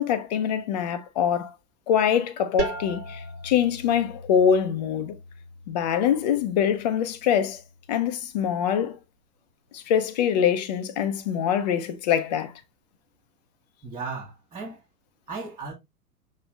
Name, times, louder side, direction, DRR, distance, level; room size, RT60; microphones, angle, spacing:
voice 1, 0.0-1.5 1.9-5.2 5.7-7.6 7.9-9.0 9.7-12.5, left 8 dB, 30° left, 0.5 m, -24 dB
sound 1, 2.6-8.1, right 3 dB, 75° right, 1.2 m, -38 dB
voice 2, 13.8-14.8 15.3-15.7, right 4 dB, 10° right, 0.7 m, -35 dB
6.2 x 2.6 x 3.1 m
figure-of-eight pair, 105°, 47 cm